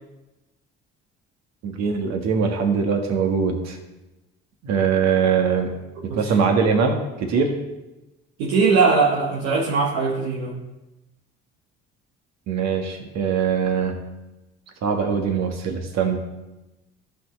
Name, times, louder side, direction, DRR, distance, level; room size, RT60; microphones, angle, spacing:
voice 1, 1.6-3.8 4.6-5.7 6.0-7.5 12.5-14.0 14.8-16.2, right 6 dB, 60° right, 4 dB, 1.6 m, -22 dB
voice 2, 8.4-10.6, right 4 dB, 80° right, -3 dB, 1.2 m, -20 dB
14.0 x 6.2 x 3.2 m, 1.0 s
hypercardioid pair, 55°, 30 cm